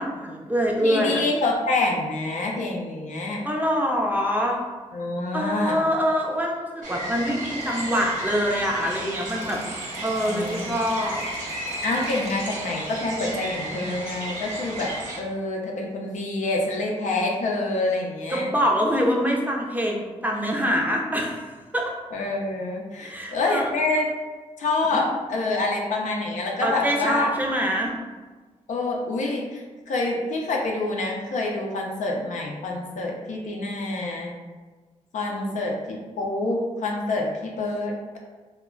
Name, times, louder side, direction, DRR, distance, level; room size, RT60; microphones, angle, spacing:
voice 1, 0.0-1.2 3.4-4.6 5.3-9.6 10.0-11.2 18.3-21.4 21.7-21.9 23.0-23.7 24.9-25.0 26.6-27.9 35.3-35.6, equal, 15° right, -1 dB, 0.5 m, -25 dB
voice 2, 0.8-3.4 4.9-5.8 10.2-10.7 11.8-18.5 22.1-24.1 24.6-27.3 28.7-34.3 35.1-38.2, left 2 dB, 75° left, -1 dB, 0.5 m, -27 dB
sound 1, 6.8-15.2, right 1 dB, 85° right, 0.7 m, -33 dB
Drip, 7.6-13.2, right 1 dB, 55° right, 0.9 m, -45 dB
2.2 x 2.1 x 3.7 m, 1.3 s
cardioid pair, 60°, 13 cm